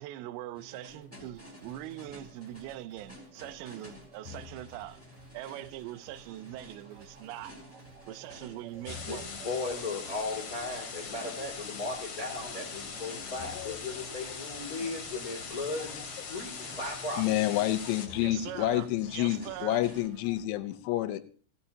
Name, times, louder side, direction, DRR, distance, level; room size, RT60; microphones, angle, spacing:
voice 1, 0.0-5.0 5.3-7.6 8.1-9.4 14.8-14.9 18.2-19.8, right 14 dB, 80° right, 2.7 m, -42 dB
sound 1, 0.5-20.1, left 1 dB, 5° left, 2.5 m, -51 dB
sound 2, 0.9-20.4, right 5 dB, 50° right, 1.7 m, -56 dB
sound 3, 8.9-18.1, left 5 dB, 50° left, 2.6 m, -41 dB
voice 2, 9.1-17.2, left 3 dB, 30° left, 1.9 m, -37 dB
voice 3, 17.1-21.2, left 14 dB, 80° left, 2.7 m, -29 dB
15.5 x 14.5 x 2.8 m
omnidirectional pair, 5.3 m